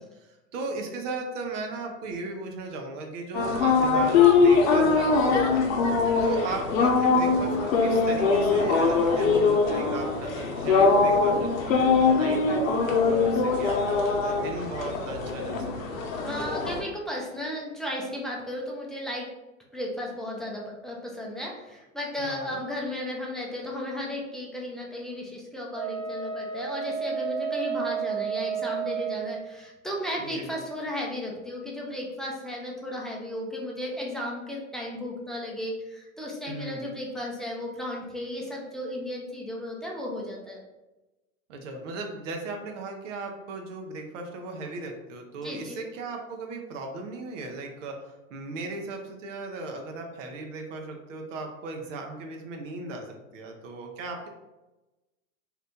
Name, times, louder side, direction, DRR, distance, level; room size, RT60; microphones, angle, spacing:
voice 1, 0.0-5.7 6.2-15.8 22.2-22.6 30.2-30.5 36.5-36.9 41.5-54.3, right 3 dB, 65° right, 3 dB, 0.7 m, -37 dB
sound 1, 3.3-16.8, left 4 dB, 70° left, 0.8 m, -22 dB
voice 2, 16.2-19.3 19.7-40.6 45.4-45.8, left 1 dB, ahead, -3 dB, 0.5 m, -34 dB
Wind instrument woodwind instrument, 25.7-29.4, right 7 dB, 25° right, 1.1 m, -31 dB
2.9 x 2.4 x 3.5 m, 1.0 s
hypercardioid pair, 100°, 41 cm